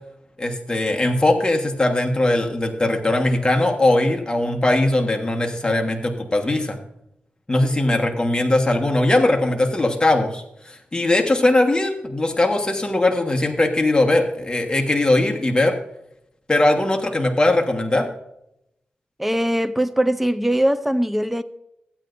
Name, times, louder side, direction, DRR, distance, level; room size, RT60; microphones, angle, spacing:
voice 1, 0.4-6.8 7.5-15.8 16.5-18.1, left 2 dB, 25° left, 1.4 m, -20 dB
voice 2, 19.2-21.4, right 1 dB, 5° right, 0.5 m, -21 dB
15.0 x 9.0 x 2.6 m
cardioid pair, 65°, 4 cm